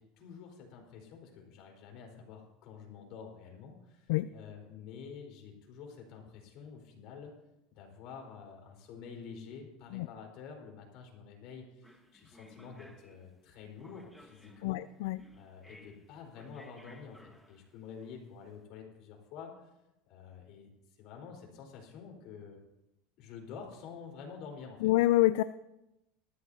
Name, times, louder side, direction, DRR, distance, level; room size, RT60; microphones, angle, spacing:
voice 1, 0.0-7.3 7.7-14.9 15.3-19.7 20.1-20.7 21.0-22.6 23.2-24.9, left 6 dB, 55° left, 0 dB, 4.3 m, -48 dB
sound 1, 11.8-18.5, left 1 dB, ahead, 1.2 m, -59 dB
voice 2, 14.6-15.2 24.8-25.4, left 16 dB, 75° left, 14 dB, 0.3 m, -26 dB
19.5 x 13.5 x 2.8 m, 0.92 s
supercardioid pair, 140°, 0 cm